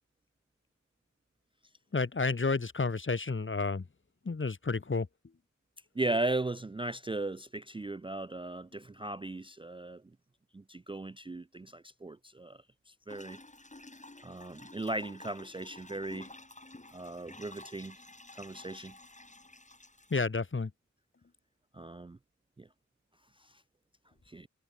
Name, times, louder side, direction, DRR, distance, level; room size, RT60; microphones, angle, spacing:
voice 1, 1.9-3.9 4.2-5.1 20.1-20.7, left 4 dB, 40° left, 1.4 m, -30 dB
voice 2, 6.0-10.0 10.5-12.6 12.9-13.4 14.2-16.3 16.9-18.0 18.3-18.9 21.7-22.2 22.6-22.7 23.4-23.5 24.3-24.5, right 2 dB, 15° right, 0.4 m, -37 dB
sound 1, 13.1-20.2, left 2 dB, 25° left, 2.6 m, -52 dB
wide cardioid pair, 65°, 30 cm